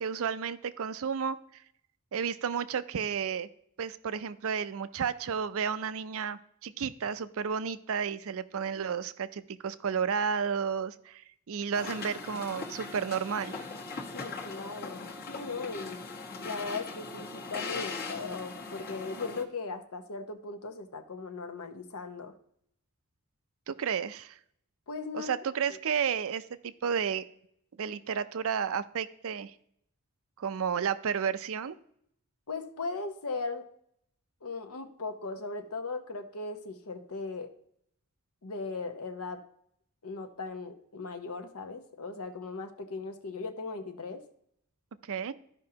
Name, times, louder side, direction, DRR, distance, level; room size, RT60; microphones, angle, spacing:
voice 1, 0.0-1.4 2.1-3.5 3.8-13.7 23.7-24.4 25.1-27.2 27.8-29.5 30.4-31.8 45.1-45.3, right 7 dB, 65° right, 14 dB, 0.5 m, -32 dB
sound 1, 11.7-19.4, left 4 dB, 45° left, 1.2 m, -40 dB
voice 2, 14.1-16.0 16.4-22.3 24.9-25.3 25.7-25.8 32.5-33.6 34.4-37.5 38.4-39.4 40.0-44.2, left 3 dB, 80° left, 7 dB, 0.9 m, -38 dB
14.0 x 5.3 x 2.8 m, 0.70 s
head